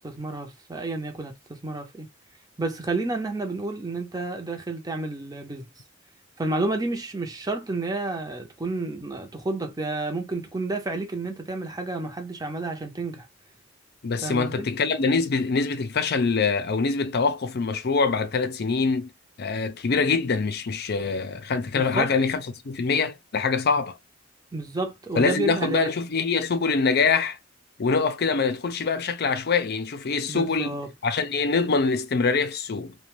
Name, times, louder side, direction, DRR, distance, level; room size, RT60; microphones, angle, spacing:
voice 1, 0.0-2.1 2.6-5.7 6.4-13.3 14.2-14.7 21.7-22.1 24.5-25.9 30.3-30.9, right 2 dB, 20° right, 0.7 m, -30 dB
voice 2, 14.0-19.1 19.4-24.0 25.1-27.4 27.8-30.8 31.0-33.0, left 4 dB, 55° left, 0.5 m, -24 dB
2.5 x 2.2 x 3.0 m
head